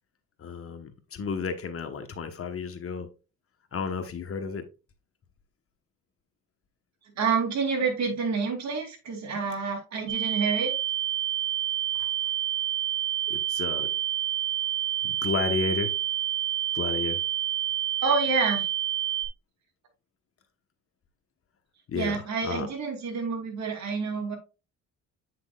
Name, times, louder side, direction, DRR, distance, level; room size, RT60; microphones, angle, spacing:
voice 1, 0.4-3.1 3.7-4.7 12.0-12.1 13.3-13.9 15.0-15.9 16.7-17.2 21.9-22.7, left 5 dB, 50° left, 6 dB, 1.2 m, -32 dB
voice 2, 7.2-10.7 18.0-18.6 21.9-24.4, right 5 dB, 65° right, 2 dB, 2.7 m, -28 dB
sound 1, 10.1-19.3, right 12 dB, 80° right, 2.0 m, -28 dB
8.6 x 6.1 x 2.4 m, 0.30 s
cardioid pair, 90°, 30 cm